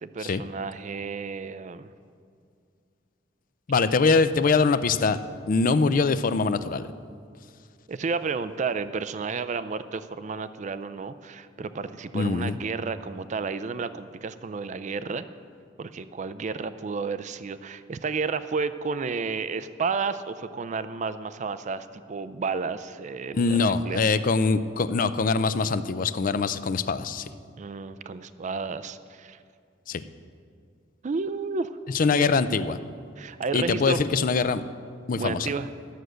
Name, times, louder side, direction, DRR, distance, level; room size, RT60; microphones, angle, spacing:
voice 1, 0.0-1.9 7.9-15.2 15.8-24.1 27.6-29.4 31.0-31.7 33.2-34.0 35.2-35.7, right 4 dB, 40° right, 13 dB, 0.4 m, -31 dB
voice 2, 3.7-5.2 5.5-6.9 12.1-12.6 23.3-27.3 29.9-30.0 31.9-32.8 33.5-34.6 35.1-35.5, left 4 dB, 45° left, 13 dB, 0.4 m, -23 dB
13.0 x 6.3 x 7.9 m, 2.2 s
head